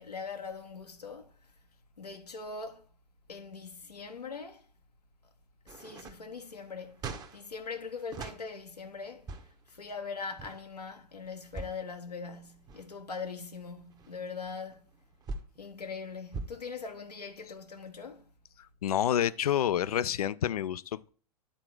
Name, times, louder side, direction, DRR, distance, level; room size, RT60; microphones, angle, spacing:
voice 1, 0.0-1.3 2.0-2.8 3.3-4.7 5.7-7.0 7.3-9.3 9.7-14.8 15.6-18.3, left 5 dB, 85° left, 0.9 m, -41 dB
sound 1, 5.7-8.4 9.1-9.7 10.3-10.6 11.3-11.9 12.4-13.0 13.6-15.6 16.3-16.5, right 3 dB, 20° right, 0.8 m, -42 dB
voice 2, 18.8-21.1, left 10 dB, 70° left, 0.4 m, -28 dB
9.8 x 3.7 x 4.7 m
figure-of-eight pair, 100°, 20 cm